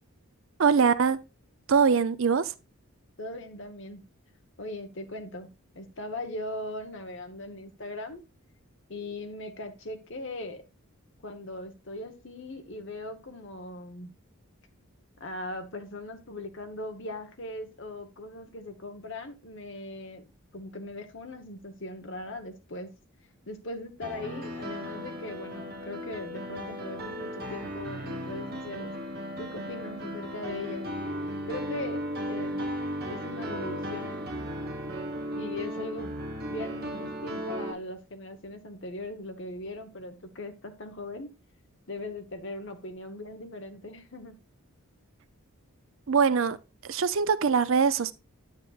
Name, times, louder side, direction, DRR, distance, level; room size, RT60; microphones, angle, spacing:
voice 1, 0.6-1.2 1.7-2.5 46.1-46.6 46.9-48.1, right 6 dB, 60° right, 0.5 m, -22 dB
voice 2, 3.2-4.0 4.6-5.5 5.7-8.2 8.9-10.6 11.2-14.1 15.2-20.2 20.5-22.9 23.5-28.9 29.4-30.9 31.5-32.6 33.1-34.2 35.3-36.1 36.5-41.3 41.9-44.4, left 2 dB, 55° left, 1.1 m, -39 dB
Piano, 24.0-37.7, equal, 45° right, 1.3 m, -36 dB
9.6 x 7.9 x 2.4 m
head